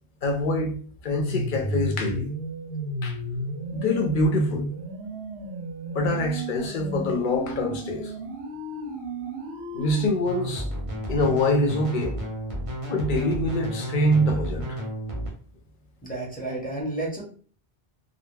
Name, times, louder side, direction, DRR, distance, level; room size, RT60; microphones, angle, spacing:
voice 1, 0.2-0.8 1.0-2.3 3.0-3.2 3.7-4.7 5.9-8.1 9.7-10.7 11.1-12.2 12.9-14.8, left 1 dB, 55° left, 0.7 m, -25 dB
sound 1, 1.1-10.1, equal, 85° right, 0.9 m, -33 dB
sound 2, 10.3-15.3, equal, 35° right, 0.7 m, -32 dB
voice 2, 16.0-17.2, right 2 dB, 10° left, 0.8 m, -31 dB
2.2 x 2.1 x 3.2 m
omnidirectional pair, 1.1 m